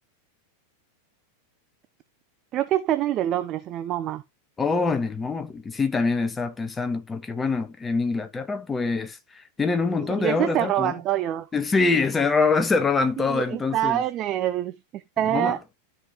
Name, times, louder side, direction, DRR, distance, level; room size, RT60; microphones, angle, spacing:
voice 1, 2.5-4.2 10.0-11.5 13.2-15.6, right 12 dB, 35° right, 0.6 m, -26 dB
voice 2, 4.6-10.9 11.5-14.0 15.3-15.6, left 4 dB, 15° left, 1.3 m, -25 dB
13.0 x 5.3 x 2.9 m
figure-of-eight pair, 90°, 0 cm